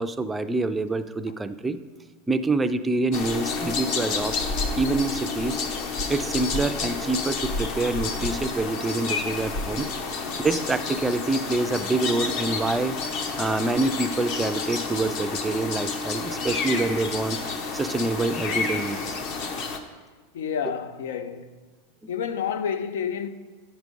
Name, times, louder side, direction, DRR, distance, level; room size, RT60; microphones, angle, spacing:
voice 1, 0.0-1.8 2.3-4.4 4.7-5.6 6.1-9.9 10.4-13.0 13.4-17.4 17.7-19.2, right 2 dB, 10° right, 0.3 m, -26 dB
sound 1, 3.1-19.8, left 4 dB, 50° left, 0.8 m, -30 dB
voice 2, 20.3-21.6 22.1-23.3, left 7 dB, 90° left, 0.6 m, -29 dB
9.7 x 4.8 x 5.3 m
supercardioid pair, 155°, 0 cm